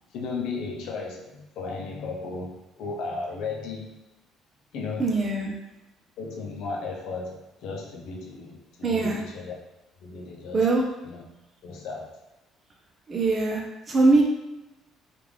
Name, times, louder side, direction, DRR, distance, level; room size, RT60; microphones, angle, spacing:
voice 1, 0.1-4.0 4.7-5.1 6.2-9.6 10.0-10.7 11.0-11.2 11.6-12.2, left 4 dB, 70° left, 0 dB, 0.6 m, -35 dB
voice 2, 5.0-5.5 8.8-9.2 10.5-10.8 13.1-14.2, right 3 dB, 40° right, -1 dB, 0.7 m, -22 dB
3.4 x 2.5 x 3.2 m, 0.99 s
hypercardioid pair, 60°, 0 cm